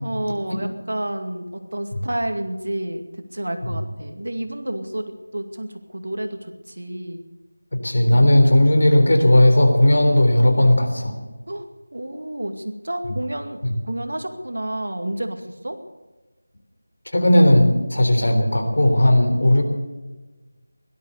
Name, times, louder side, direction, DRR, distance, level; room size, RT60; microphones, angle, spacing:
voice 1, 0.0-3.0 3.3-7.3 11.5-15.8, right 1 dB, 75° right, 6 dB, 2.2 m, -30 dB
voice 2, 7.7-11.1 13.6-13.7 17.1-19.6, left 1 dB, 65° left, 5 dB, 3.5 m, -16 dB
17.0 x 12.5 x 6.8 m, 1.2 s
figure-of-eight pair, 170°, 0 cm